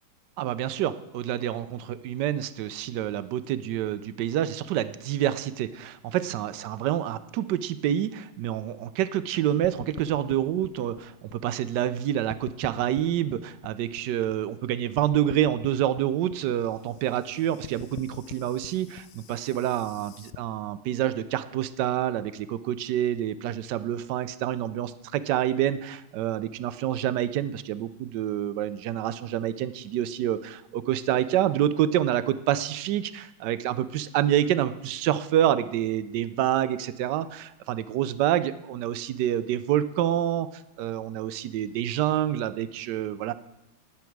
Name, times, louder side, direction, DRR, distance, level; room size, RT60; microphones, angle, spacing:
voice 1, 0.4-40.5 40.8-43.3, right 11 dB, 75° right, 14 dB, 1.0 m, -27 dB
sound 1, 9.6-12.0 12.3-14.7 15.0-20.4, left 12 dB, 80° left, 0.8 m, -44 dB
19.0 x 7.2 x 4.6 m, 0.95 s
omnidirectional pair, 2.3 m